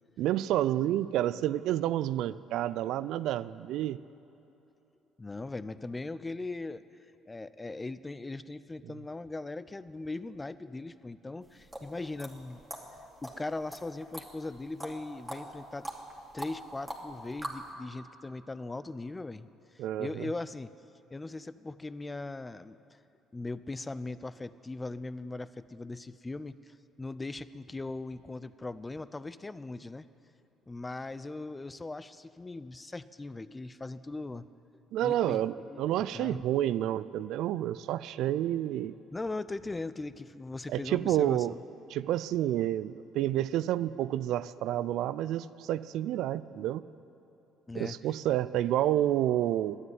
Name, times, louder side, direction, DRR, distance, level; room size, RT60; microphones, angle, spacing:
voice 1, 0.2-4.0 19.8-20.3 34.9-38.9 40.7-41.5 41.9-46.8 47.7-49.8, right 12 dB, 70° right, 16 dB, 0.3 m, -29 dB
voice 2, 5.2-6.8 7.3-12.6 13.2-15.9 16.3-19.5 19.7-20.7 21.1-22.8 23.3-30.1 30.7-34.5 35.0-35.4 35.7-36.4 39.1-41.6 47.7-48.0, left 2 dB, 20° left, 15 dB, 0.5 m, -39 dB
sound 1, 11.4-17.7, right 1 dB, 5° right, 2.3 m, -42 dB
11.0 x 9.3 x 9.4 m, 2.9 s
supercardioid pair, 70°, 0 cm